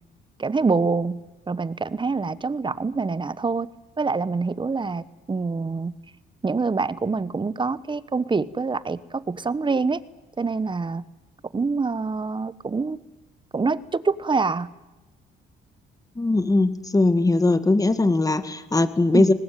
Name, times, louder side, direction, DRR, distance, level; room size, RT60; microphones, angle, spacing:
voice 1, 0.4-1.2 1.5-3.7 4.0-5.9 6.4-10.0 10.4-11.0 11.5-13.0 13.5-14.7 19.1-19.3, right 4 dB, 25° right, 18 dB, 1.0 m, -25 dB
voice 2, 16.2-19.3, left 2 dB, 15° left, 12 dB, 1.8 m, -20 dB
21.0 x 19.5 x 9.2 m, 1.1 s
cardioid pair, 90°, 20 cm